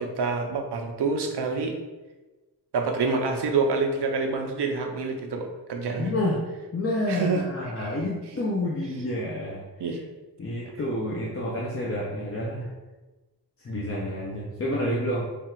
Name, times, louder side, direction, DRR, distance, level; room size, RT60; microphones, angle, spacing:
voice 1, 0.0-1.8 2.7-6.1 7.1-7.4 7.8-7.9 9.8-10.0, right 4 dB, 75° right, 3 dB, 0.7 m, -27 dB
voice 2, 6.0-6.4 6.7-9.6 10.4-12.7 13.6-15.2, left 1 dB, 35° left, -5 dB, 0.6 m, -29 dB
3.4 x 2.4 x 4.4 m, 1.2 s
wide cardioid pair, 130°, 40 cm